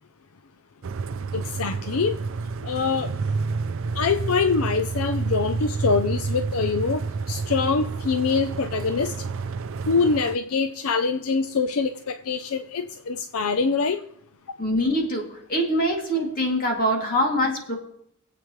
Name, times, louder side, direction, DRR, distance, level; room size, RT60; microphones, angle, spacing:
sound 1, 0.8-10.4, right 4 dB, 65° right, 0.5 m, -29 dB
voice 1, 1.3-2.2 2.6-3.1 4.0-9.1 9.9-14.0, left 4 dB, 75° left, 9 dB, 0.6 m, -24 dB
voice 2, 14.6-17.8, equal, 40° left, 0 dB, 2.7 m, -24 dB
24.5 x 8.3 x 3.2 m, 0.71 s
head